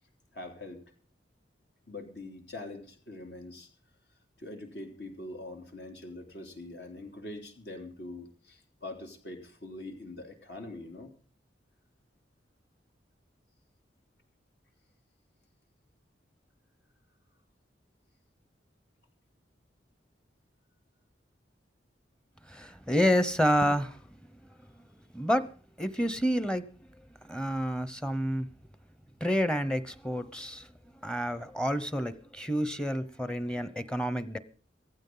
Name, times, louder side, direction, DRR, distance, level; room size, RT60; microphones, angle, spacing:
voice 1, 0.3-0.8 1.9-3.7 4.4-11.1 29.0-29.2, left 2 dB, 70° left, 4 dB, 3.3 m, -43 dB
voice 2, 22.5-24.0 25.1-25.5 25.8-26.7 27.3-28.5 29.2-30.7 31.0-34.4, equal, 5° left, 13 dB, 0.8 m, -29 dB
18.0 x 15.0 x 3.9 m, 0.41 s
head